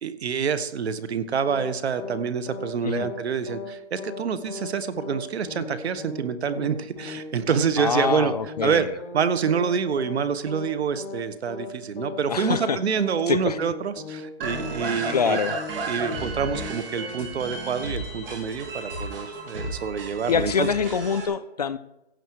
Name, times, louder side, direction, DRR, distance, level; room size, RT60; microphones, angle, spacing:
voice 1, 0.0-8.3 8.6-8.9 9.1-15.4 15.8-20.7, right 6 dB, 70° right, 13 dB, 1.4 m, -27 dB
sound 1, 1.5-1.7 2.0-2.2 2.5-2.7 3.0-3.2 3.5-3.7 4.0-4.2 4.5-4.7 5.0-5.2 5.5-5.7 6.0-6.2 6.5-6.7 7.0-7.2 7.5-7.7 8.0-8.2 8.5-8.7 9.0-9.2 9.5-9.7 10.0-10.2 10.5-10.7 11.0-11.2 11.5-11.7 12.0-12.2 12.5-12.7 13.0-13.2 13.5-13.7 14.0-14.2 14.5-14.7 15.0-15.2 15.5-15.7 16.0-16.2 16.5-16.7 17.0-17.2, left 5 dB, 20° left, 2.9 m, -37 dB
voice 2, 7.8-8.9 12.3-12.8 13.3-13.6 14.8-15.6 20.3-21.8, left 6 dB, 40° left, 14 dB, 0.4 m, -25 dB
sound 2, 14.4-21.3, right 2 dB, 55° right, 4.0 m, -33 dB
15.5 x 8.4 x 4.8 m, 0.93 s
hypercardioid pair, 170°, 33 cm